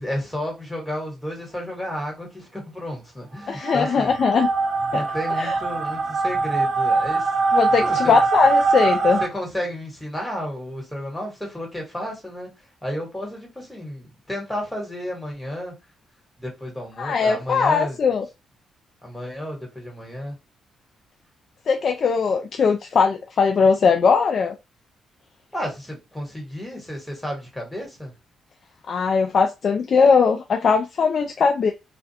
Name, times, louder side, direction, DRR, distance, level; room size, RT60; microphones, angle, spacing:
voice 1, 0.0-4.2 4.9-7.3 7.8-8.2 9.2-12.5 12.8-15.7 16.4-18.0 19.0-20.4 25.5-28.1, equal, 5° left, 1.3 m, -32 dB
voice 2, 3.5-4.5 4.9-5.0 5.4-5.5 7.5-9.2 17.0-18.2 21.7-24.5 28.9-31.7, left 5 dB, 55° left, 0.3 m, -20 dB
sound 1, 3.5-9.3, right 3 dB, 55° right, 0.4 m, -22 dB
2.4 x 2.1 x 2.7 m
cardioid pair, 100°, 0 cm